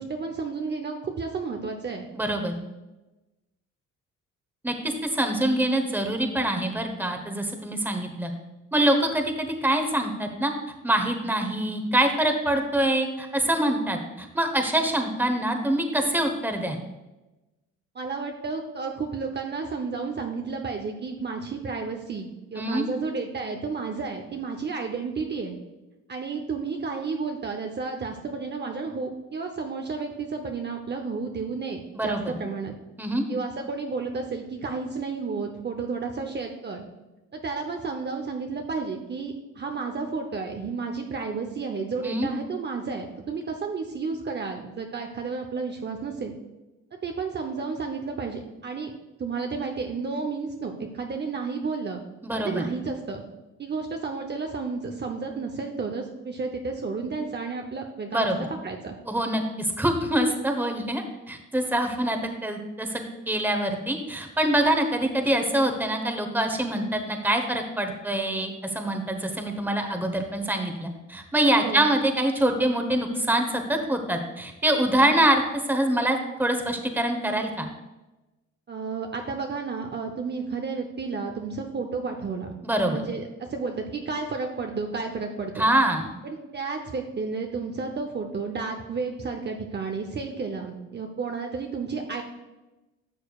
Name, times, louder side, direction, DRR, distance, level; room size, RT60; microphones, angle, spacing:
voice 1, 0.0-2.1 17.9-25.6 26.1-32.7 33.3-36.8 37.3-46.3 46.9-48.9 49.2-52.0 52.3-53.2 53.6-58.3 58.6-58.9 71.6-71.9 78.7-82.5 82.8-85.7 86.2-92.2, right 4 dB, 35° right, 3 dB, 0.8 m, -32 dB
voice 2, 2.1-2.5 4.6-8.3 8.7-10.5 10.8-16.8 22.6-22.9 31.9-32.2 33.0-33.2 42.0-42.3 52.2-52.6 58.1-58.4 59.1-77.7 82.6-83.0 85.6-86.0, right 1 dB, 5° right, 5 dB, 1.1 m, -25 dB
11.5 x 6.5 x 2.4 m, 1.0 s
cardioid pair, 90°, 30 cm